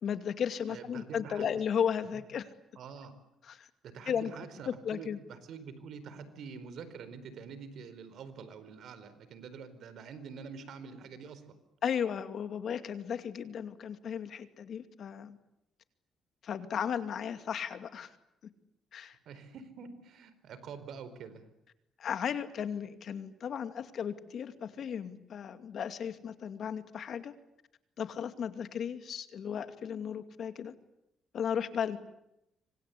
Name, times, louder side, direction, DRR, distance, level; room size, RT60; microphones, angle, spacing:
voice 1, 0.0-2.5 3.5-3.7 4.1-4.3 4.7-5.2 11.8-15.4 16.4-18.1 18.9-19.2 22.0-27.3 28.0-30.7 31.3-32.0, left 8 dB, 60° left, 9 dB, 2.4 m, -35 dB
voice 2, 0.7-1.5 2.1-2.2 2.8-3.1 3.8-11.4 19.3-21.4, right 6 dB, 70° right, 13 dB, 4.4 m, -46 dB
26.5 x 25.0 x 8.5 m, 0.85 s
cardioid pair, 90°, 0 cm